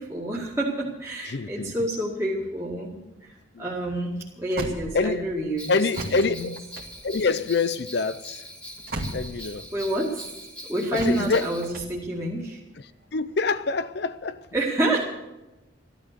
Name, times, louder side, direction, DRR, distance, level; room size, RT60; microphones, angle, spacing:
voice 1, 0.0-3.3 3.6-5.7 6.2-6.5 9.4-10.3 10.7-12.6 14.5-15.0, right 1 dB, 15° right, 2.1 m, -28 dB
voice 2, 1.2-1.8 3.5-3.7 4.9-5.3 5.7-6.6 7.0-8.4 9.1-9.7 10.9-11.5 13.1-14.5, left 4 dB, 55° left, 0.5 m, -26 dB
sound 1, 3.1-5.5 5.9-9.9 10.9-12.6 13.1-14.1, right 1 dB, 50° right, 2.3 m, -37 dB
Bell, 5.6-11.7, equal, 5° left, 1.5 m, -42 dB
15.0 x 12.5 x 6.7 m
head